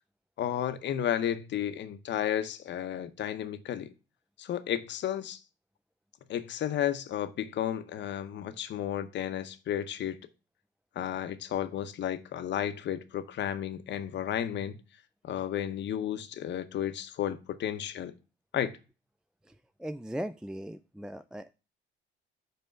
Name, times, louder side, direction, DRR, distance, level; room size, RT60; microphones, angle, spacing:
voice 1, 0.4-3.9 4.4-5.4 6.3-10.2 11.0-14.8 15.2-18.1 18.5-18.8, left 10 dB, 65° left, 0.8 m, -33 dB
voice 2, 19.8-21.5, equal, 5° right, 0.3 m, -38 dB
5.5 x 4.3 x 6.3 m
cardioid pair, 90°, 20 cm